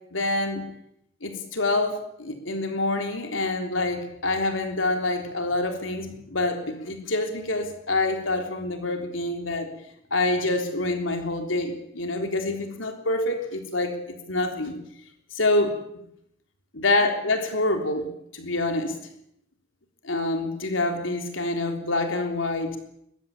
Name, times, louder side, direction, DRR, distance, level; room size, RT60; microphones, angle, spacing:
voice 1, 0.1-0.6 1.2-9.7 10.1-14.8 15.3-15.8 16.8-18.1 18.3-18.9 20.0-22.8, left 2 dB, 75° left, 5 dB, 3.6 m, -26 dB
22.0 x 21.5 x 8.8 m, 0.76 s
head